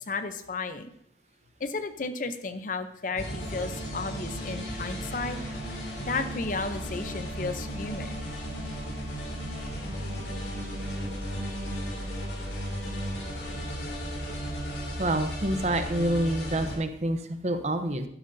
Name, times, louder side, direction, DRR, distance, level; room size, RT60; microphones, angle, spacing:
voice 1, 0.1-0.9 1.6-5.4 6.0-8.2, left 3 dB, 45° left, 10 dB, 0.7 m, -33 dB
sound 1, 3.2-16.8, equal, 70° left, 3.0 m, -35 dB
voice 2, 15.0-18.1, right 1 dB, 40° right, 8 dB, 0.8 m, -27 dB
12.0 x 11.0 x 2.7 m, 0.72 s
head